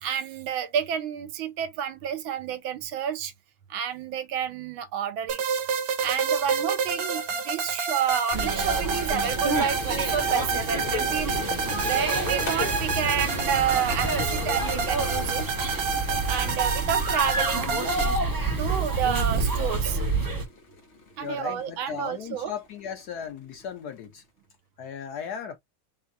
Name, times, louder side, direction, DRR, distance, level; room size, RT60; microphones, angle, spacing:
voice 1, 0.0-3.3 3.7-5.4 6.0-15.5 16.3-20.0 21.2-22.5, right 8 dB, 80° right, 1.4 m, -30 dB
sound 1, 5.3-18.2, right 5 dB, 55° right, 1.3 m, -29 dB
sound 2, 8.3-20.4, right 2 dB, 35° right, 0.3 m, -28 dB
sound 3, 9.7-24.2, left 3 dB, 45° left, 1.1 m, -42 dB
voice 2, 21.2-24.2 24.8-25.6, left 8 dB, 80° left, 0.9 m, -36 dB
4.3 x 2.3 x 3.9 m
omnidirectional pair, 2.2 m